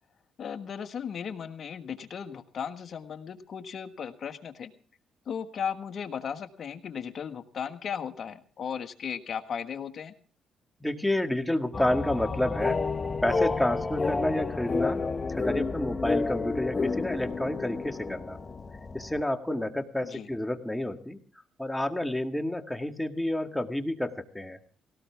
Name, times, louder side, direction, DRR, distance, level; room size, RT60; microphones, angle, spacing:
voice 1, 0.4-4.7 5.2-10.1 20.0-20.3, left 7 dB, 55° left, 8 dB, 1.6 m, -36 dB
voice 2, 10.8-12.8 13.2-18.4 18.9-21.2 21.6-24.6, left 1 dB, 5° left, 6 dB, 1.8 m, -30 dB
sound 1, 11.7-19.2, left 3 dB, 30° left, 1.0 m, -30 dB
19.0 x 18.0 x 3.5 m, 0.42 s
cardioid pair, 90°, 0 cm